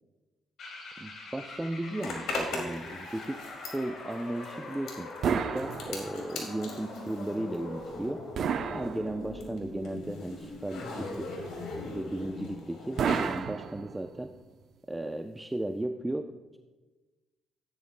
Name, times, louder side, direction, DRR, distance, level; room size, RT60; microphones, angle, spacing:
sound 1, 0.6-12.7, left 2 dB, 65° left, 3.6 m, -43 dB
voice 1, 1.0-3.4 3.7-8.2 8.7-11.3 11.8-14.3 14.9-16.6, right 1 dB, 10° right, 6 dB, 0.5 m, -35 dB
Zipper (clothing), 2.0-8.2 8.4-13.4, left 2 dB, 85° left, 2.4 m, -40 dB
sound 2, 5.2-6.4 8.3-9.6 13.0-14.3, right 7 dB, 65° right, 0.6 m, -31 dB
15.5 x 10.5 x 2.2 m, 1.2 s
cardioid pair, 90°, 0 cm